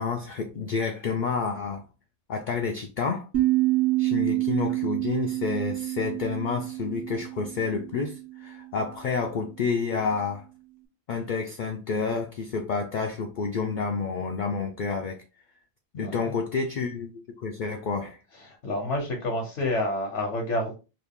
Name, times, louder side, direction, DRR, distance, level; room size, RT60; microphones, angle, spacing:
voice 1, 0.0-1.8 2.3-3.3 4.0-10.5 11.1-15.2 15.9-18.2, left 5 dB, 60° left, 0.5 m, -29 dB
sound 1, 3.3-8.5, right 18 dB, 60° right, 1.0 m, -27 dB
voice 2, 16.0-16.3 18.5-20.8, left 1 dB, 80° left, 1.2 m, -29 dB
3.0 x 2.4 x 3.5 m
omnidirectional pair, 1.2 m